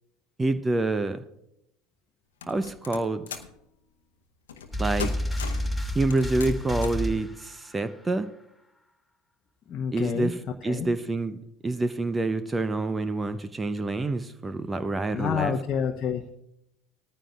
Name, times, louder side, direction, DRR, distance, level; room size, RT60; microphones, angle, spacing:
voice 1, 0.4-1.2 2.5-3.3 4.8-5.1 5.9-8.3 9.9-15.6, right 2 dB, 15° right, 12 dB, 0.7 m, -27 dB
sound 1, 2.4-3.6 4.5-4.7 5.0-5.7 6.1-7.1, left 7 dB, 75° left, 0.8 m, -38 dB
sound 2, 4.7-7.9, equal, ahead, 2.3 m, -30 dB
voice 2, 9.7-10.3 10.6-10.9 15.1-16.2, left 7 dB, 40° left, 2 dB, 0.9 m, -28 dB
19.0 x 14.0 x 2.4 m, 0.82 s
figure-of-eight pair, 70°, 0 cm